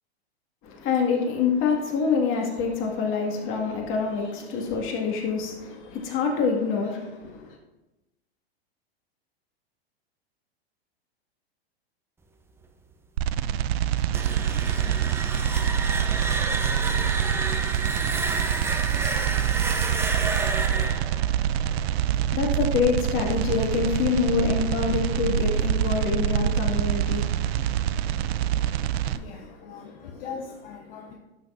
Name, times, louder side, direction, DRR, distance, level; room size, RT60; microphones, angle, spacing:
voice 1, 0.6-7.6 21.7-30.2, left 5 dB, 40° left, 0 dB, 2.0 m, -27 dB
sound 1, 13.2-29.2, right 10 dB, 70° right, 0.5 m, -26 dB
sound 2, 14.0-22.8, right 3 dB, 10° right, 0.5 m, -30 dB
voice 2, 25.9-26.9 27.2-31.1, left 5 dB, 60° left, 2 dB, 1.0 m, -43 dB
11.5 x 6.3 x 2.6 m, 1.0 s
hypercardioid pair, 125°, 32 cm